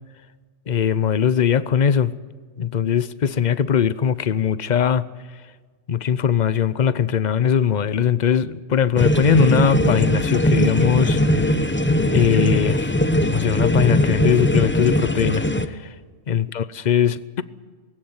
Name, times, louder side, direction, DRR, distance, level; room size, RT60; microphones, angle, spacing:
voice 1, 0.7-2.1 2.6-5.0 5.9-11.6 12.1-12.9 13.3-15.9 16.3-17.4, left 8 dB, 45° left, 0.7 m, -20 dB
sound 1, 9.0-15.7, equal, 10° left, 0.8 m, -20 dB
20.5 x 16.5 x 9.6 m
omnidirectional pair, 1.3 m